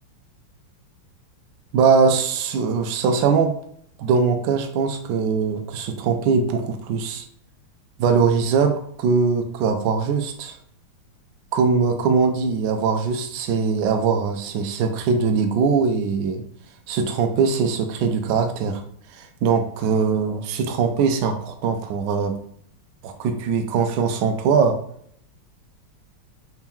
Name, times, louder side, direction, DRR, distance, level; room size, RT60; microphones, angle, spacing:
voice 1, 1.7-3.5 4.0-7.2 8.0-10.6 11.5-16.4 16.9-18.8 19.1-22.4 23.0-24.8, right 5 dB, 80° right, 5 dB, 0.9 m, -21 dB
4.3 x 2.2 x 3.5 m, 0.65 s
omnidirectional pair, 2.3 m